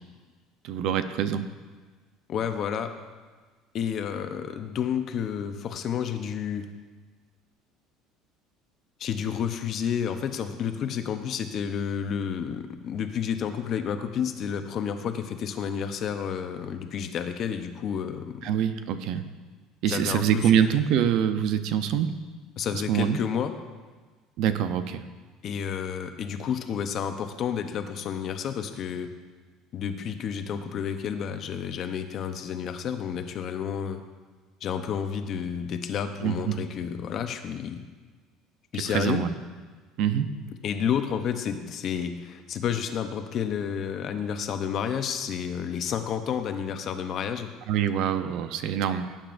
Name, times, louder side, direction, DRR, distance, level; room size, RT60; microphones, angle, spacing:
voice 1, 0.6-1.5 18.4-19.3 19.8-22.1 22.9-23.2 24.4-25.0 36.2-36.6 38.8-39.3 40.0-40.3 47.7-49.1, right 9 dB, 60° right, 10 dB, 0.6 m, -25 dB
voice 2, 2.3-2.9 3.7-6.7 9.0-18.5 19.9-20.6 22.6-23.5 25.4-29.1 29.7-34.0 34.6-37.8 38.7-39.3 40.6-47.5, left 8 dB, 40° left, 7 dB, 0.7 m, -30 dB
17.5 x 8.8 x 2.6 m, 1.4 s
cardioid pair, 160°, 0 cm